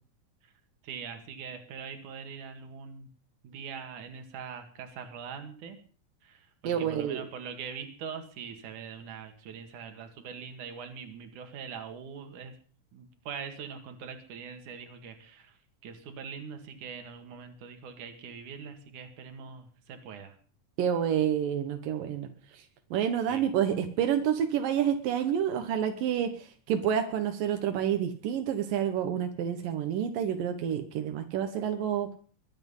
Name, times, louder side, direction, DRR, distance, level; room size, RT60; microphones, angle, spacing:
voice 1, 0.8-3.1 3.4-5.8 6.2-12.5 12.9-15.6 15.8-20.4 23.3-23.5, right 6 dB, 65° right, 6 dB, 3.4 m, -42 dB
voice 2, 6.6-7.2 20.8-22.6 22.9-32.1, right 9 dB, 85° right, 6 dB, 3.0 m, -29 dB
22.0 x 10.5 x 5.5 m, 0.43 s
omnidirectional pair, 3.8 m